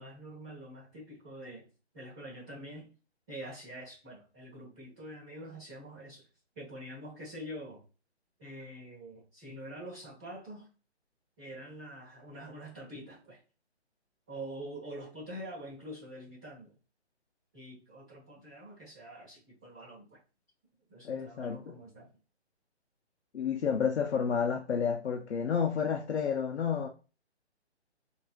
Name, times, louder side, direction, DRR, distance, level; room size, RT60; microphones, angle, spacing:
voice 1, 0.0-1.7 1.9-2.9 3.3-6.3 6.5-7.8 8.4-10.7 11.4-13.4 14.3-16.7 17.5-20.2 20.9-22.1, right 1 dB, 15° right, 1.1 m, -45 dB
voice 2, 21.0-21.6 23.3-26.9, left 7 dB, 75° left, 0.6 m, -30 dB
3.0 x 2.6 x 2.2 m
hypercardioid pair, 175°, 34 cm